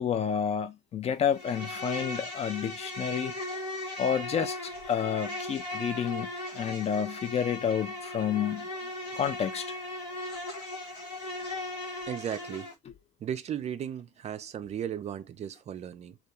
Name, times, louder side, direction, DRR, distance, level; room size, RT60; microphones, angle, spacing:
voice 1, 0.0-3.3 4.0-6.3 6.5-8.7 9.1-9.7, left 8 dB, 35° left, 0.4 m, -30 dB
Insect, 1.3-12.7, left 1 dB, 90° left, 1.0 m, -38 dB
voice 2, 12.1-12.7 13.2-16.2, right 9 dB, 35° right, 0.4 m, -36 dB
2.3 x 2.2 x 2.9 m
hypercardioid pair, 70°, 19 cm